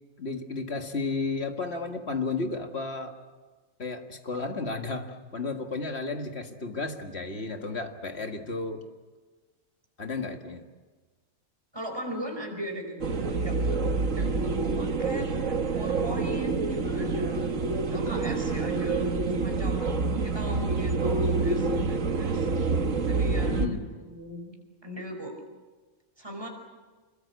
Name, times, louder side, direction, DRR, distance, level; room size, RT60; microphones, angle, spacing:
voice 1, 0.2-3.1 3.8-8.8 10.0-10.6 23.5-23.9, left 3 dB, 50° left, 5 dB, 2.1 m, -33 dB
voice 2, 11.7-13.8 14.1-17.5 17.9-22.5 23.1-24.5 24.8-25.4 26.2-26.5, equal, 20° right, 2 dB, 5.1 m, -38 dB
sound 1, 13.0-23.7, right 4 dB, 70° right, 1.8 m, -27 dB
26.5 x 22.0 x 8.3 m, 1.3 s
omnidirectional pair, 1.4 m